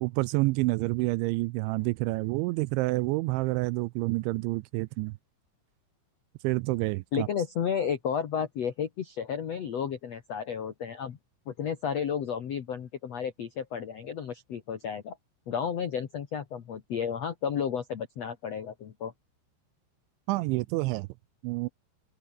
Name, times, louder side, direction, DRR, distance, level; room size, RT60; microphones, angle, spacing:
voice 1, 0.0-5.1 6.4-7.3 20.3-21.1 21.4-21.7, right 22 dB, 85° right, 2.8 m, -28 dB
voice 2, 7.1-11.2 11.4-15.2 15.5-19.1, left 7 dB, 75° left, 1.5 m, -32 dB
omnidirectional pair, 5.6 m